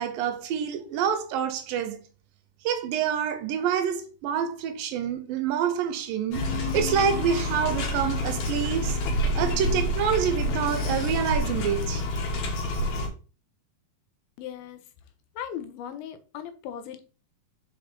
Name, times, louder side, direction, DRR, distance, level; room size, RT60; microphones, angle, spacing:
voice 1, 0.0-2.0 2.6-9.0 9.4-12.0, right 8 dB, 80° right, 2.5 m, -27 dB
sound 1, 6.3-13.1, left 1 dB, 60° left, 2.5 m, -28 dB
voice 2, 14.4-14.8 15.4-17.0, left 9 dB, 85° left, 2.7 m, -37 dB
5.8 x 4.7 x 4.3 m
omnidirectional pair, 4.2 m